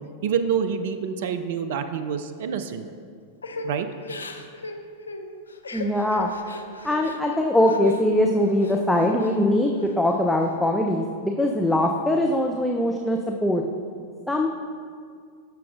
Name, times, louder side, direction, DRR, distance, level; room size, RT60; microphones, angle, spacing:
voice 1, 0.2-2.9 3.6-3.9, right 7 dB, 55° right, 9 dB, 0.4 m, -27 dB
Crying sobbing / Breathing, 3.4-8.0 8.4-9.4 9.8-10.5, left 2 dB, 75° left, 0.5 m, -39 dB
voice 2, 5.7-6.3 6.8-13.6 14.3-14.5, left 1 dB, 5° left, 1 dB, 0.5 m, -22 dB
13.5 x 5.9 x 2.4 m, 2.1 s
figure-of-eight pair, 90°, 0 cm